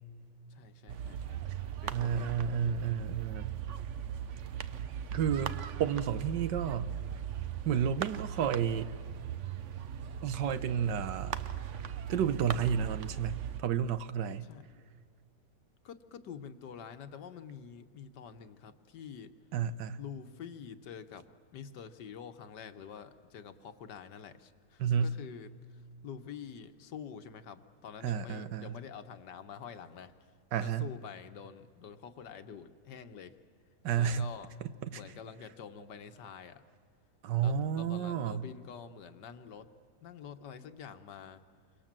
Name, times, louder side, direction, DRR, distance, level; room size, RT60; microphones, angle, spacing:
voice 1, 0.5-1.5 1.8-2.8 14.4-14.8 15.8-19.3 20.0-21.2 21.5-30.3 30.6-33.4 34.0-34.5 34.9-36.6 37.4-39.7 40.0-41.4, left 7 dB, 80° left, 1.7 m, -47 dB
sound 1, 0.9-13.6, right 9 dB, 55° right, 0.9 m, -39 dB
voice 2, 1.9-3.5 5.1-5.5 5.8-7.0 7.6-8.9 10.2-11.4 12.1-14.5 19.5-20.0 24.8-25.1 28.0-28.7 30.5-30.9 33.8-34.3 34.8-35.0 37.2-38.5, right 8 dB, 85° right, 1.6 m, -31 dB
28.0 x 24.5 x 7.5 m
omnidirectional pair, 1.8 m